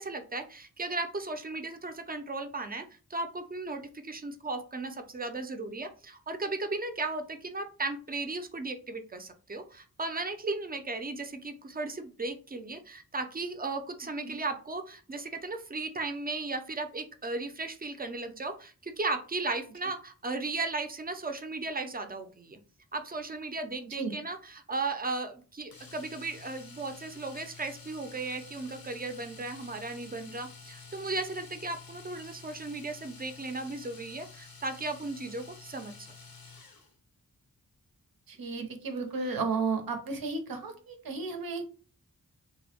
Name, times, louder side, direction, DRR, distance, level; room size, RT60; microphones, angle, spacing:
voice 1, 0.0-22.6 22.9-36.1, right 3 dB, 25° right, 7 dB, 0.4 m, -36 dB
Domestic sounds home sounds, 25.7-36.9 39.1-39.2 39.5-39.6, left 4 dB, 90° left, 0.6 m, -50 dB
voice 2, 38.3-41.7, right 4 dB, 90° right, 6 dB, 0.6 m, -33 dB
2.6 x 2.0 x 2.8 m, 0.38 s
wide cardioid pair, 60°, 34 cm